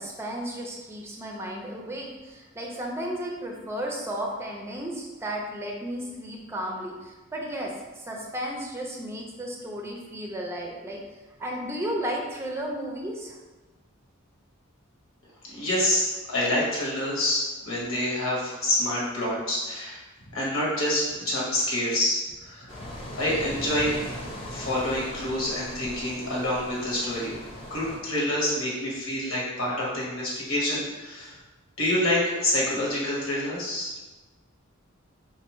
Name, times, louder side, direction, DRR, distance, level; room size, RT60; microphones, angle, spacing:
voice 1, 0.0-11.0 11.4-13.4, equal, 10° right, -1 dB, 0.5 m, -34 dB
voice 2, 15.4-20.0 20.3-22.7 23.1-23.9 24.5-27.4 27.7-31.4 31.8-33.9, left 1 dB, 80° left, -5 dB, 1.3 m, -27 dB
sound 1, 22.7-28.0, equal, 25° left, 0.7 m, -39 dB
4.4 x 2.5 x 3.0 m, 1.2 s
head